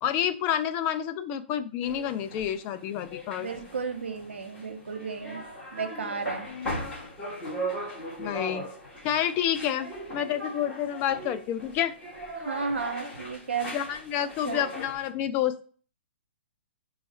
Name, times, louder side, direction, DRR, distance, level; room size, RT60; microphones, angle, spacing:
voice 1, 0.0-3.5 8.2-8.6 9.0-11.9 13.7-15.6, left 10 dB, 30° left, 10 dB, 0.4 m, -29 dB
sound 1, 1.8-15.1, equal, 10° left, 1.8 m, -39 dB
voice 2, 3.4-5.4 5.7-6.5 12.4-13.7 14.5-14.7, right 5 dB, 85° right, 6 dB, 0.9 m, -33 dB
3.9 x 2.4 x 4.2 m, 0.40 s
hypercardioid pair, 140°, 6 cm